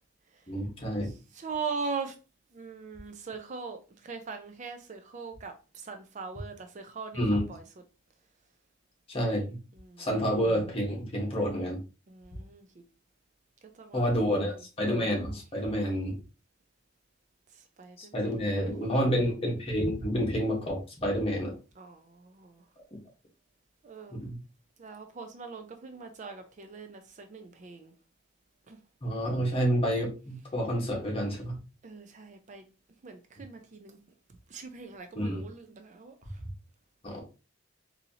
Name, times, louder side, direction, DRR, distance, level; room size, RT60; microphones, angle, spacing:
voice 1, 0.5-1.1 7.1-7.4 9.1-9.6 10.0-11.8 13.9-16.2 18.0-21.5 24.1-24.4 29.0-31.6 35.1-35.4 37.0-37.2, equal, 30° left, 1.2 m, -29 dB
voice 2, 1.3-2.1 2.5-7.6 9.8-10.1 12.1-12.7 13.7-14.1 17.5-18.9 19.2-19.3 21.8-22.6 23.8-24.2 24.8-27.9 28.7-28.8 31.8-32.6 33.0-34.0 34.5-36.2, right 5 dB, 40° right, 0.4 m, -41 dB
4.1 x 2.7 x 2.7 m
head